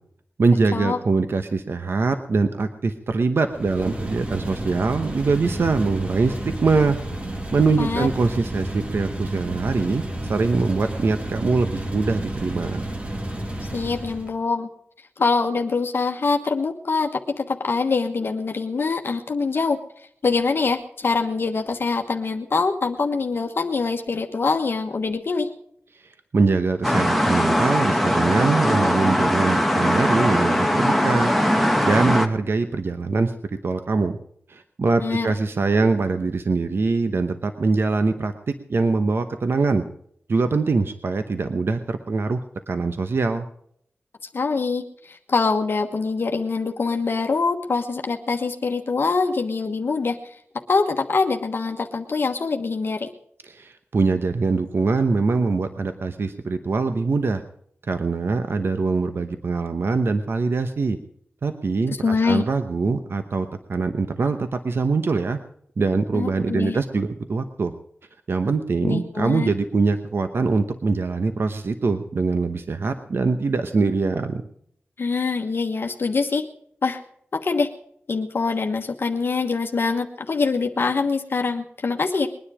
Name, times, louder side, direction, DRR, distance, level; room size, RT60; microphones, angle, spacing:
voice 1, 0.4-7.0 7.5-10.0 10.3-12.8 25.9-31.3 31.8-33.3 33.6-34.2 34.5-39.8 40.3-43.5 53.4-57.4 57.9-61.0 61.4-65.4 65.8-67.7 68.3-74.4, right 4 dB, 65° right, 8 dB, 0.9 m, -23 dB
sound 1, 3.5-14.3, right 1 dB, 30° right, 1.9 m, -31 dB
voice 2, 13.7-14.7 15.2-17.1 17.4-19.8 20.2-25.5 35.0-35.3 44.3-50.4 50.7-53.1 62.0-62.4 66.1-66.8 68.8-69.5 75.0-76.4 76.8-77.0 77.3-77.7 78.1-82.3, left 4 dB, 60° left, 4 dB, 1.2 m, -24 dB
sound 2, 26.8-32.3, equal, ahead, 1.6 m, -20 dB
21.5 x 10.0 x 4.9 m, 0.67 s
wide cardioid pair, 80°, 4 cm